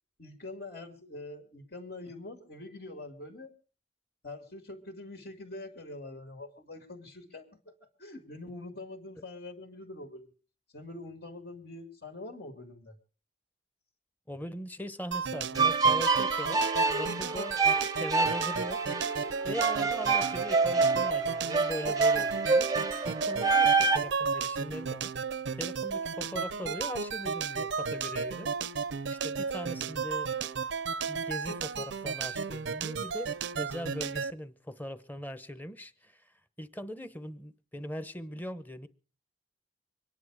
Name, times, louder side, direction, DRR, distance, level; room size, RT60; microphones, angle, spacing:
voice 1, 0.2-3.5 4.2-10.3 10.7-12.9, left 2 dB, 65° left, 2.6 m, -44 dB
voice 2, 14.3-17.7 18.0-22.7 23.0-25.1 25.5-28.5 29.1-30.3 31.1-36.1 36.6-38.9, left 1 dB, 10° left, 0.9 m, -40 dB
sound 1, 15.1-34.3, right 6 dB, 85° right, 0.7 m, -33 dB
sound 2, 15.6-24.0, right 4 dB, 20° right, 0.7 m, -27 dB
24.5 x 10.5 x 4.9 m
head